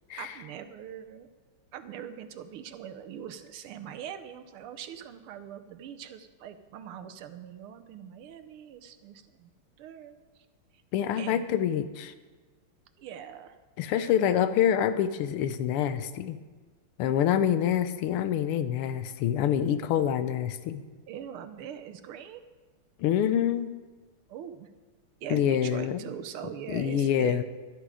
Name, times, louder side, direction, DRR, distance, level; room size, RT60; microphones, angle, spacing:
voice 1, 0.2-1.3 1.7-9.5 9.8-10.5 11.2-11.4 13.0-13.6 13.9-14.1 17.3-17.5 21.1-22.4 24.3-24.7 25.2-27.4, right 9 dB, 80° right, 10 dB, 1.7 m, -42 dB
voice 2, 10.9-12.1 13.8-16.4 17.0-20.8 23.0-23.7 25.3-26.0 26.7-27.4, left 9 dB, 85° left, 11 dB, 1.6 m, -26 dB
12.5 x 11.5 x 4.9 m, 1.3 s
omnidirectional pair, 2.4 m